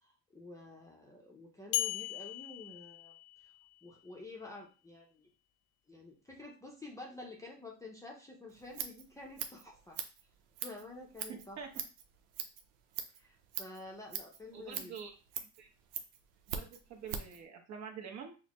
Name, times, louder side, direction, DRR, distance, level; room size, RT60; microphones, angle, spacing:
voice 1, 0.0-3.1 3.4-3.5 3.8-5.3 5.9-10.0 10.6-11.6 13.1-14.9, left 2 dB, 10° left, -1 dB, 0.6 m, -50 dB
sound 1, 1.7-3.8, left 16 dB, 85° left, 0.5 m, -38 dB
Scissors, 8.5-17.4, right 8 dB, 85° right, 0.7 m, -43 dB
voice 2, 14.5-15.1 15.4-15.7 16.5-18.3, right 6 dB, 45° right, 3 dB, 1.0 m, -46 dB
6.2 x 2.1 x 3.0 m, 0.34 s
cardioid pair, 135°, 37 cm